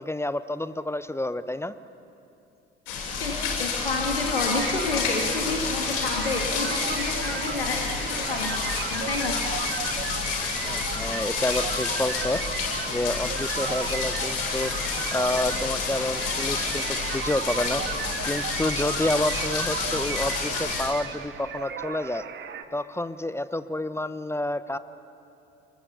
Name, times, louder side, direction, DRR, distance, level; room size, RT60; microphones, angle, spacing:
voice 1, 0.0-1.7 10.6-12.4 12.9-17.8 18.2-22.2 22.7-24.8, left 1 dB, 10° left, 14 dB, 0.8 m, -29 dB
sound 1, 2.9-20.9, left 5 dB, 60° left, 7.7 m, -29 dB
voice 2, 3.2-9.3, left 3 dB, 85° left, 0 dB, 1.8 m, -30 dB
sound 2, 4.3-22.6, right 7 dB, 40° right, 1.6 m, -35 dB
29.5 x 21.5 x 6.9 m, 2.8 s
figure-of-eight pair, 60°, 29 cm